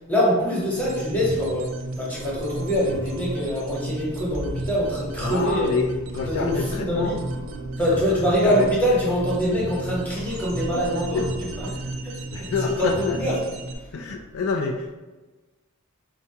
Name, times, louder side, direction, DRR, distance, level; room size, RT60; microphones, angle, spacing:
voice 1, 0.1-5.7 6.3-7.2 7.8-11.2 11.6-11.8 12.0-13.4 13.8-13.9, equal, 10° left, -6 dB, 0.9 m, -24 dB
sound 1, 0.7-13.8, right 1 dB, 65° right, 0.4 m, -33 dB
sound 2, 3.8-12.0, right 1 dB, 80° left, 1.0 m, -43 dB
voice 2, 5.2-7.2 8.4-8.7 11.1-11.3 12.3-13.2 13.9-14.9, left 4 dB, 65° left, 3 dB, 0.3 m, -27 dB
4.4 x 2.2 x 2.7 m, 1.2 s
head